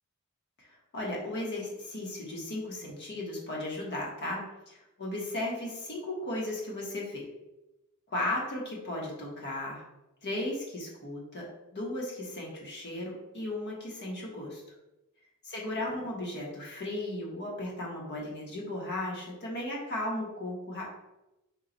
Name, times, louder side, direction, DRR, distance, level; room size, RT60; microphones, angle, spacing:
voice 1, 0.9-7.2 8.1-9.8 10.2-11.4 11.7-14.6 15.5-20.8, left 1 dB, 50° left, -3 dB, 1.1 m, -35 dB
4.5 x 2.3 x 3.9 m, 0.96 s
head